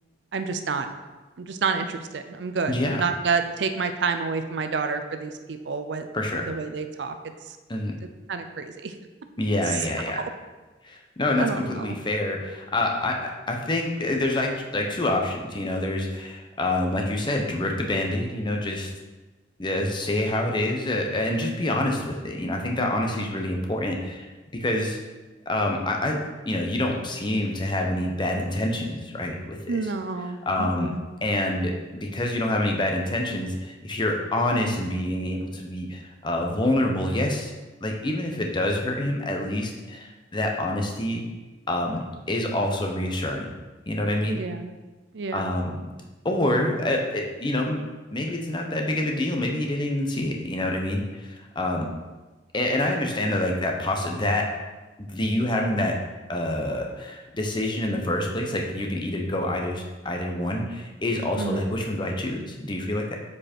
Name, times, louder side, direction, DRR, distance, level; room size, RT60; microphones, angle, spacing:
voice 1, 0.3-0.9 1.4-6.1 6.5-7.1 7.5-7.6 8.3-8.9 9.7-9.8 10.2-10.3 11.4-12.0 29.7-31.0 44.3-44.8 45.1-45.5 61.4-61.7, right 5 dB, 65° right, 8 dB, 0.5 m, -29 dB
voice 2, 2.7-3.0 6.1-6.5 7.7-7.9 9.4-10.2 10.8-18.9 19.6-25.0 25.5-26.2 26.4-29.8 30.5-30.9 31.2-37.5 37.8-41.2 41.7-43.5 43.9-44.4 45.3-45.9 46.2-47.8 48.1-51.9 52.5-54.5 55.0-55.9 56.3-63.2, left 1 dB, 25° left, 1 dB, 0.9 m, -27 dB
7.6 x 4.7 x 4.4 m, 1.2 s
head